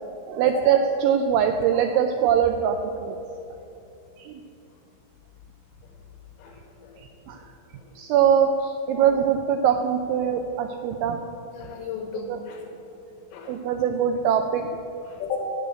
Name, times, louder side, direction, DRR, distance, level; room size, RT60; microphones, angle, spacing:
voice 1, 0.3-2.8 3.0-3.2 4.2-4.3 7.3-7.4 8.0-11.2 12.3-12.4 13.5-14.7, right 8 dB, 85° right, 6 dB, 2.6 m, -22 dB
voice 2, 6.4-7.0 7.8-7.9 11.5-12.6 13.3-13.6 15.1-15.4, left 7 dB, 80° left, 1 dB, 2.9 m, -34 dB
8.3 x 7.5 x 7.9 m, 2.8 s
omnidirectional pair, 5.8 m